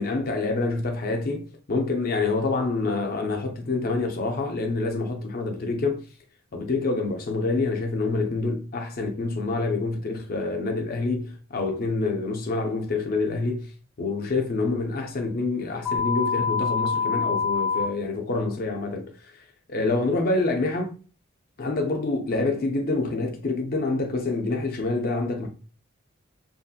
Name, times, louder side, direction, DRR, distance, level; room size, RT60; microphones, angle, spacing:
voice 1, 0.0-6.0 6.5-13.7 14.0-19.3 19.7-20.9 21.6-25.5, left 3 dB, 45° left, 0.5 m, -27 dB
sound 1, 15.9-17.9, left 5 dB, 5° right, 0.6 m, -25 dB
2.7 x 2.6 x 2.3 m
head